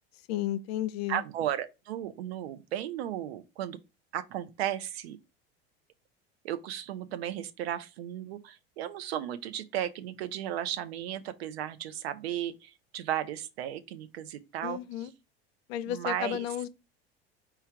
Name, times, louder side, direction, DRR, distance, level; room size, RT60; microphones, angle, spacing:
voice 1, 0.3-1.2 14.6-15.1 15.7-16.7, left 12 dB, 75° left, 0.5 m, -33 dB
voice 2, 1.1-3.8 4.1-5.2 6.4-15.1 15.9-16.5, right 11 dB, 80° right, 0.6 m, -35 dB
4.6 x 2.3 x 4.5 m
hypercardioid pair, 85°, 31 cm